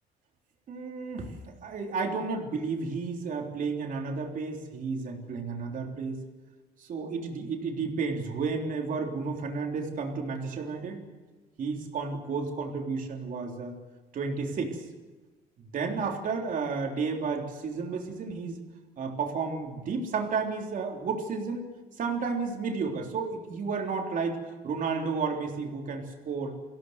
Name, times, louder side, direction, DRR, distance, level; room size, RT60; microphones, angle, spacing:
voice 1, 0.7-6.2 6.8-11.0 11.6-13.8 14.1-14.9 15.6-18.6 19.0-21.7 22.0-26.6, right 4 dB, 50° right, 2 dB, 3.5 m, -32 dB
23.0 x 16.5 x 8.1 m, 1.2 s
cardioid pair, 110°, 17 cm